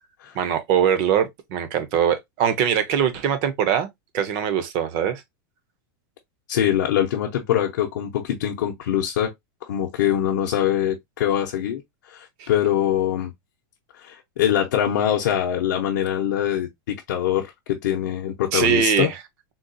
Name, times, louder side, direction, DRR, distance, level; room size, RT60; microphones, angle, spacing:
voice 1, 0.3-3.9 4.1-5.2 12.4-12.5 18.5-19.2, right 8 dB, 30° right, 0.5 m, -22 dB
voice 2, 6.5-9.3 9.6-13.3 13.9-19.1, left 11 dB, 60° left, 0.6 m, -23 dB
3.7 x 2.2 x 2.5 m
supercardioid pair, 175°, 11 cm